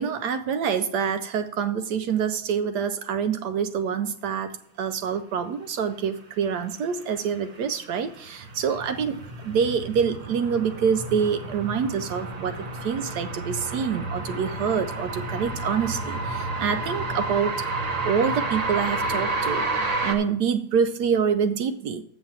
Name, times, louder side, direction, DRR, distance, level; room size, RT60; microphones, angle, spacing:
voice 1, 0.0-17.7 18.0-19.7 20.0-22.0, right 7 dB, 70° right, 10 dB, 1.0 m, -26 dB
sound 1, 7.4-20.1, right 2 dB, 45° right, 0.5 m, -30 dB
7.2 x 6.3 x 7.3 m, 0.66 s
omnidirectional pair, 2.0 m